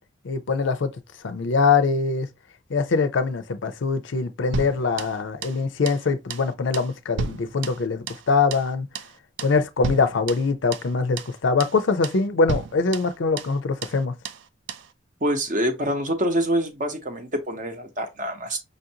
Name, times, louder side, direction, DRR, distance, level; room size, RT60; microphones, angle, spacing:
voice 1, 0.2-0.9 1.2-2.3 2.7-8.9 9.4-14.1, left 4 dB, 65° left, 0.5 m, -23 dB
sound 1, 4.5-5.6 5.9-6.0 6.3-6.5 6.7-8.3 8.5-8.7 8.9-9.1 9.4-9.6 9.8-10.9 11.2-11.3 11.6-11.8 12.0-12.2 12.5-13.6 13.8-14.0 14.2-14.4 14.7-14.9, right 5 dB, 60° right, 0.3 m, -33 dB
voice 2, 15.2-18.6, equal, 40° right, 0.7 m, -25 dB
5.3 x 2.5 x 2.7 m
head